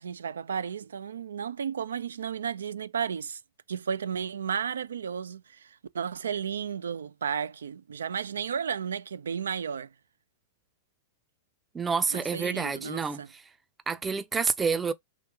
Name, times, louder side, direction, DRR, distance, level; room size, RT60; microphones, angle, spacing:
voice 1, 0.0-3.4 3.7-9.9 12.1-13.3, right 7 dB, 75° right, 0.3 m, -33 dB
voice 2, 11.7-13.4 13.9-14.9, right 5 dB, 15° right, 0.5 m, -28 dB
3.2 x 3.2 x 3.3 m
hypercardioid pair, 100°, 0 cm